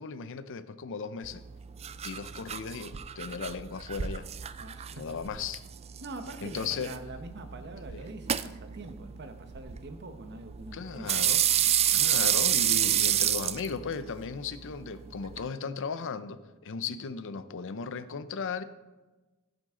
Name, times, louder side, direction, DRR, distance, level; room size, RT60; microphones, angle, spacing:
voice 1, 0.0-1.4 2.0-4.3 4.9-5.6 6.4-6.9 7.9-8.1 10.7-11.4 11.9-18.6, left 5 dB, 60° left, 13 dB, 0.6 m, -36 dB
sound 1, 1.2-15.5, right 10 dB, 30° right, 0.3 m, -30 dB
voice 2, 4.6-5.2 6.0-11.2 16.8-16.9, right 2 dB, 50° right, 7 dB, 1.1 m, -44 dB
15.5 x 7.9 x 3.8 m, 1.2 s
head